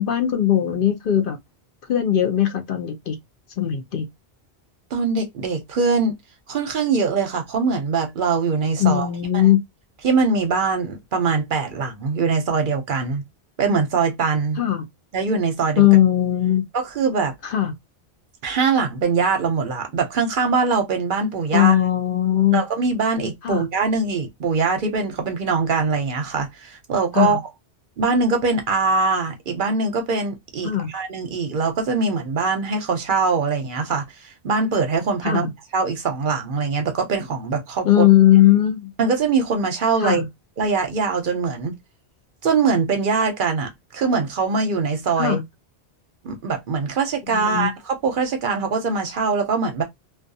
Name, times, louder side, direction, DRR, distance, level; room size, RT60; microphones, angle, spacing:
voice 1, 0.0-1.4 1.9-3.2 3.6-4.1 8.8-9.6 14.6-14.8 15.8-16.6 17.4-17.7 21.5-22.7 23.4-23.6 27.1-27.4 30.6-30.9 35.2-35.5 37.8-38.9 40.0-40.3 45.2-45.4 47.3-47.7, left 12 dB, 65° left, 0.7 m, -18 dB
voice 2, 4.9-6.1 6.5-9.1 9.3-9.5 10.0-13.2 13.6-14.6 15.1-15.9 16.7-17.3 18.4-21.7 22.5-27.4 28.0-35.5 35.7-38.1 39.0-40.2 40.6-41.7 42.4-45.4 46.2-49.8, right 4 dB, 60° right, 0.7 m, -22 dB
2.3 x 2.3 x 2.6 m
omnidirectional pair, 1.1 m